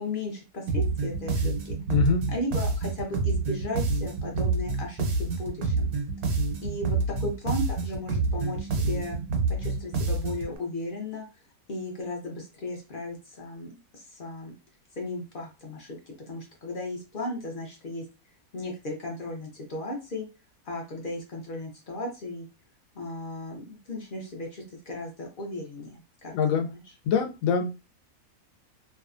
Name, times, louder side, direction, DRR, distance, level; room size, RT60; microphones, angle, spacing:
voice 1, 0.0-1.8 2.3-5.9 6.6-9.2 9.5-11.2 11.7-14.5 15.0-18.0 18.5-20.2 20.7-22.5 22.9-26.8, left 1 dB, 55° left, 1 dB, 0.6 m, -36 dB
sound 1, 0.7-10.5, right 3 dB, 90° right, 1.1 m, -28 dB
voice 2, 1.9-2.3 26.3-26.7 27.1-27.7, left 6 dB, 75° left, 4 dB, 1.0 m, -24 dB
2.6 x 2.2 x 2.4 m, 0.30 s
omnidirectional pair, 1.5 m